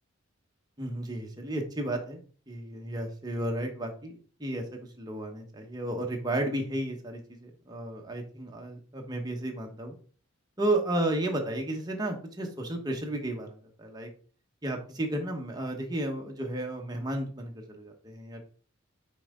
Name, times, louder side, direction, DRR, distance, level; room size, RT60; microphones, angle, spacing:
voice 1, 0.8-4.1 4.4-4.6 5.0-9.9 10.6-14.1 14.6-18.5, right 1 dB, 20° right, 2 dB, 1.1 m, -33 dB
5.9 x 4.7 x 3.7 m, 0.41 s
head